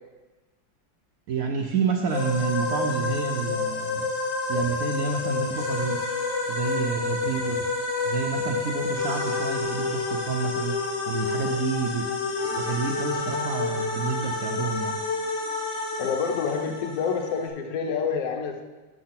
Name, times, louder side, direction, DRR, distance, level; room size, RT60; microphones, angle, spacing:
voice 1, 1.3-4.1 4.5-6.1 6.5-7.7 8.0-12.0 12.5-15.0, right 5 dB, 70° right, 3 dB, 0.8 m, -29 dB
sound 1, 2.1-17.5, left 3 dB, 75° left, 1.9 m, -29 dB
voice 2, 16.0-18.6, left 6 dB, 55° left, 3 dB, 1.2 m, -28 dB
7.7 x 6.5 x 5.9 m, 1.2 s
omnidirectional pair, 2.1 m